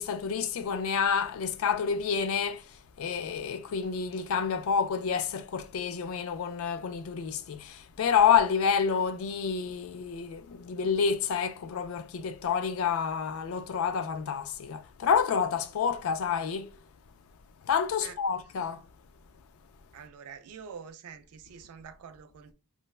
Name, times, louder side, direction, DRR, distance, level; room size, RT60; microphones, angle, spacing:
voice 1, 0.0-2.6 3.0-16.7 17.7-18.8, left 6 dB, 65° left, 0.3 m, -28 dB
voice 2, 19.9-22.5, right 6 dB, 80° right, 0.4 m, -46 dB
3.2 x 2.1 x 2.3 m
head